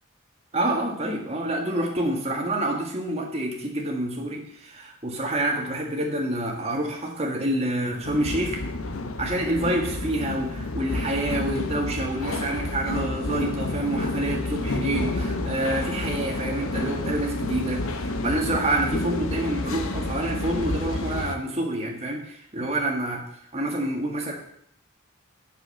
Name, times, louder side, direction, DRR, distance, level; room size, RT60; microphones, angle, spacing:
voice 1, 0.5-8.6 9.2-23.2 23.5-24.3, right 1 dB, 30° right, 0 dB, 2.0 m, -27 dB
sound 1, 8.0-21.4, left 2 dB, 80° left, 1.0 m, -29 dB
8.2 x 7.0 x 6.9 m, 0.69 s
head